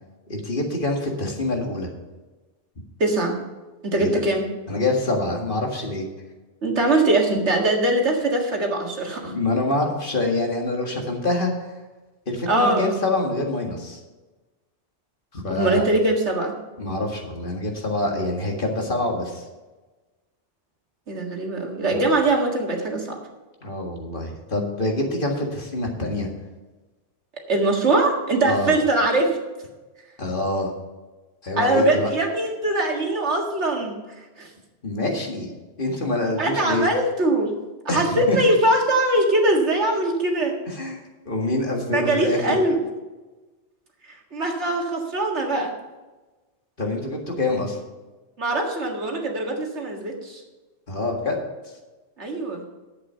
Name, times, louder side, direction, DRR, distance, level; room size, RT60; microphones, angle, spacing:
voice 1, 0.3-1.9 4.0-4.2 4.7-6.1 9.2-11.8 12.3-14.0 15.3-15.8 16.8-19.4 21.9-22.1 23.6-26.3 28.4-28.7 30.2-30.7 31.4-32.1 34.8-35.5 35.8-36.9 37.9-38.4 40.7-42.6 46.8-47.8 50.9-51.4, left 2 dB, 45° left, 1 dB, 2.0 m, -26 dB
voice 2, 3.0-3.4 3.8-4.5 6.6-9.3 12.5-12.9 15.5-16.5 21.1-23.2 27.5-29.4 31.6-34.0 34.4-34.5 36.4-37.5 37.9-40.6 41.9-42.8 44.3-45.7 48.4-50.4 52.2-52.6, right 2 dB, 75° right, 1 dB, 2.2 m, -22 dB
11.0 x 8.3 x 5.5 m, 1.2 s
omnidirectional pair, 1.2 m